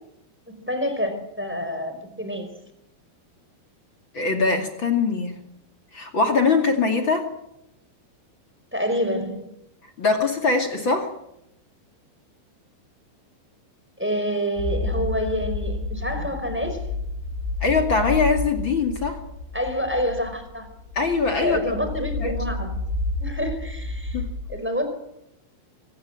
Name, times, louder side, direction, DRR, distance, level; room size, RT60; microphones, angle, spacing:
voice 1, 0.5-2.5 8.7-9.5 14.0-16.8 19.5-20.7 21.4-22.8 23.2-24.2 24.5-24.9, equal, ahead, 7 dB, 4.1 m, -27 dB
voice 2, 4.1-5.4 5.9-7.3 10.0-11.1 17.6-19.2 20.9-21.6 22.2-22.3 24.1-24.2, left 4 dB, 35° left, 4 dB, 2.1 m, -22 dB
sound 1, 14.6-24.4, left 2 dB, 70° left, 7.5 m, -30 dB
24.5 x 18.0 x 7.6 m, 0.81 s
omnidirectional pair, 5.7 m